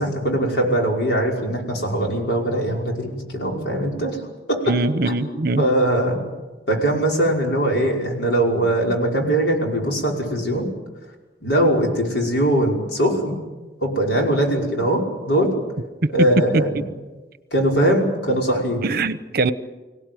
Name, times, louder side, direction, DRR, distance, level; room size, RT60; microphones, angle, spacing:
voice 1, 0.0-4.2 4.5-4.8 5.1-5.2 5.6-6.2 6.7-10.7 11.4-13.4 13.8-15.5 16.1-16.8 17.5-18.8, right 1 dB, 70° left, 0 dB, 5.6 m, -21 dB
voice 2, 4.7-5.6 18.8-19.5, right 3 dB, 55° right, 13 dB, 1.0 m, -22 dB
24.5 x 17.5 x 9.2 m, 1.2 s
head